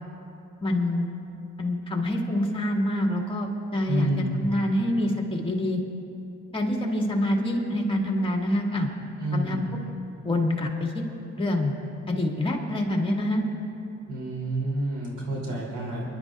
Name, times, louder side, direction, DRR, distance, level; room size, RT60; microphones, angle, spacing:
voice 1, 0.6-1.1 1.6-4.1 4.4-5.8 6.5-8.9 9.3-9.6 10.2-11.0 11.4-11.8 12.1-13.4, left 1 dB, 15° left, 0 dB, 1.8 m, -26 dB
voice 2, 3.9-4.3 9.2-9.6 14.1-16.0, right 1 dB, 75° right, -3 dB, 3.1 m, -29 dB
29.5 x 11.0 x 2.4 m, 2.9 s
cardioid pair, 90°, 30 cm